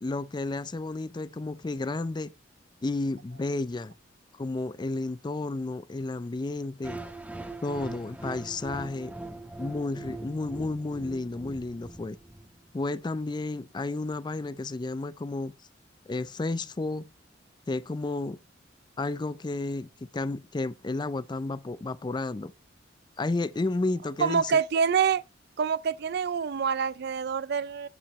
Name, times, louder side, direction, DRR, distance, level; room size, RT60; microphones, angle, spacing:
voice 1, 0.0-2.3 2.8-3.9 4.4-7.0 7.6-9.1 9.6-12.2 12.7-15.5 16.1-17.1 17.7-18.4 19.0-22.5 23.2-24.5, left 2 dB, 25° left, 0.4 m, -32 dB
sound 1, 6.8-12.8, right 2 dB, 10° right, 1.3 m, -41 dB
voice 2, 24.2-25.2 25.6-27.9, right 6 dB, 60° right, 0.4 m, -26 dB
10.5 x 8.9 x 3.1 m
head